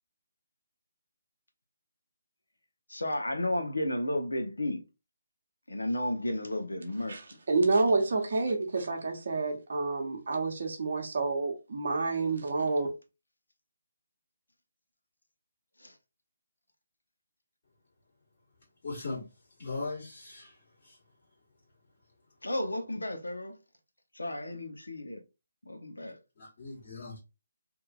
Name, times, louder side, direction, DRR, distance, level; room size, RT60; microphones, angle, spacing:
voice 1, 2.9-4.8 5.7-7.4 15.8-15.9 22.4-23.6 24.1-25.2 25.7-26.2, left 1 dB, 85° left, 0.7 m, -33 dB
voice 2, 7.5-12.9, right 3 dB, 55° right, 0.9 m, -28 dB
voice 3, 18.8-19.2 19.6-20.5 20.8-21.0 26.4-27.2, left 3 dB, 45° left, 1.4 m, -38 dB
2.8 x 2.5 x 2.3 m
figure-of-eight pair, 150°, 0 cm